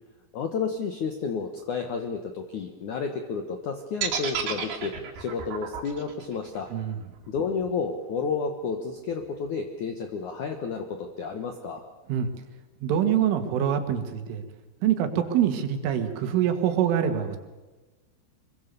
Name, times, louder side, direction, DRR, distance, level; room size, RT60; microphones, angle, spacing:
voice 1, 0.3-4.9 5.2-6.7 7.3-11.8, left 5 dB, 75° left, 5 dB, 1.8 m, -31 dB
sound 1, 4.0-8.1, right 7 dB, 55° right, 4.2 m, -32 dB
voice 2, 12.8-14.4 14.8-17.4, right 9 dB, 75° right, 7 dB, 4.3 m, -25 dB
25.5 x 23.5 x 7.0 m, 1.2 s
omnidirectional pair, 5.9 m